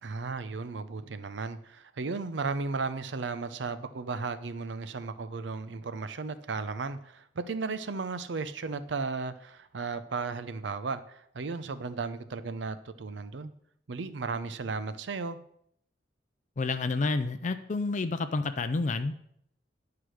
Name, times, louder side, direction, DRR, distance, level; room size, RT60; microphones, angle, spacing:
voice 1, 0.0-13.5 13.9-15.4, right 4 dB, 85° right, 12 dB, 0.6 m, -35 dB
voice 2, 16.6-19.2, left 3 dB, 45° left, 10 dB, 0.4 m, -29 dB
10.0 x 4.8 x 6.3 m, 0.71 s
head